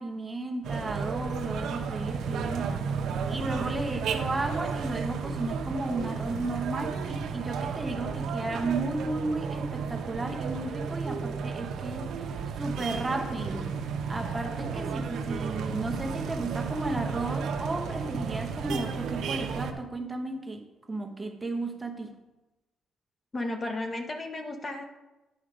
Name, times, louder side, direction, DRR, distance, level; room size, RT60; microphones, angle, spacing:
voice 1, 0.0-2.9 3.3-12.1 12.6-13.7 14.1-22.2, right 2 dB, 20° right, 1.0 m, -34 dB
sound 1, 0.6-19.7, right 5 dB, 75° right, 0.8 m, -33 dB
voice 2, 23.3-24.8, left 2 dB, 30° left, 1.1 m, -33 dB
9.6 x 4.9 x 5.0 m
cardioid pair, 90°, 0 cm